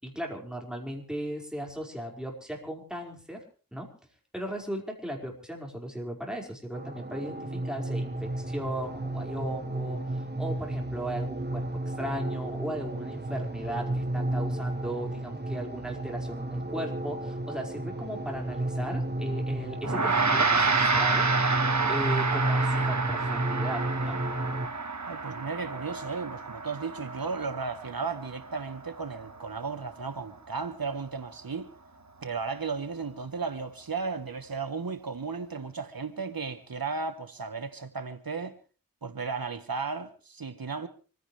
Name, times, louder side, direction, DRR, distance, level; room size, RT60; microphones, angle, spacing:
voice 1, 0.0-3.4 3.7-3.9 4.3-10.0 10.4-21.3 21.9-24.2, equal, ahead, 4.9 m, -36 dB
sound 1, 6.7-24.7, right 1 dB, 30° right, 1.1 m, -32 dB
Gong, 19.8-29.5, right 4 dB, 55° right, 1.3 m, -29 dB
voice 2, 25.1-31.7 32.2-38.5 39.0-40.9, right 4 dB, 85° right, 1.1 m, -35 dB
26.0 x 15.5 x 3.3 m
wide cardioid pair, 40°, 34 cm